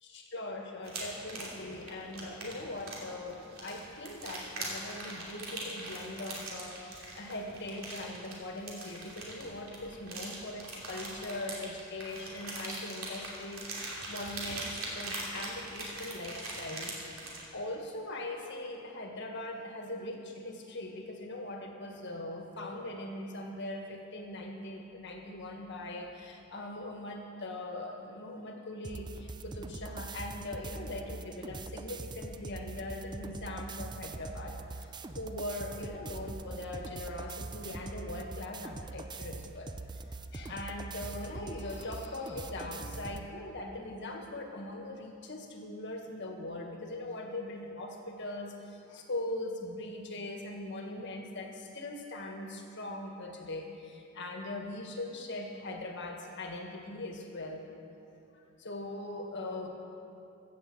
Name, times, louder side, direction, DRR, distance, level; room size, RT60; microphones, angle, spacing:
voice 1, 0.0-16.9 17.5-39.7 40.3-57.6 58.6-59.7, left 2 dB, 60° left, 2 dB, 1.7 m, -41 dB
sound 1, 0.8-17.5, right 2 dB, 90° right, 2.9 m, -41 dB
sound 2, 28.8-43.3, right 3 dB, 20° right, 0.4 m, -43 dB
14.5 x 7.4 x 7.6 m, 2.8 s
head